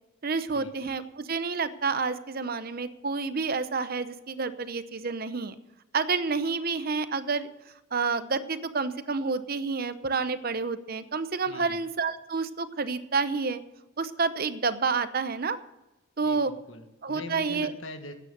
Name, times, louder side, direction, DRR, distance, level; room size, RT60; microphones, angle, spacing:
voice 1, 0.2-5.5 5.9-7.5 7.9-13.6 14.0-15.6 16.2-16.5 17.0-17.7, right 4 dB, 45° right, 13 dB, 0.7 m, -29 dB
voice 2, 11.5-11.8 16.2-18.1, left 3 dB, 70° left, 7 dB, 1.6 m, -42 dB
13.0 x 9.2 x 6.8 m, 1.0 s
head